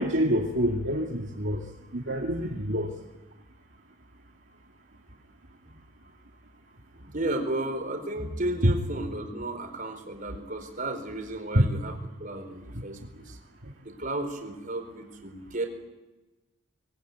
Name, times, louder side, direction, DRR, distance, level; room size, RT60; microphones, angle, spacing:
voice 1, 0.0-1.6 1.9-2.9 8.6-8.7 11.5-11.7, equal, 60° right, -1 dB, 2.3 m, -25 dB
voice 2, 6.9-13.4 13.8-15.7, right 1 dB, 40° right, 5 dB, 4.4 m, -33 dB
25.0 x 21.0 x 9.4 m, 1.1 s
head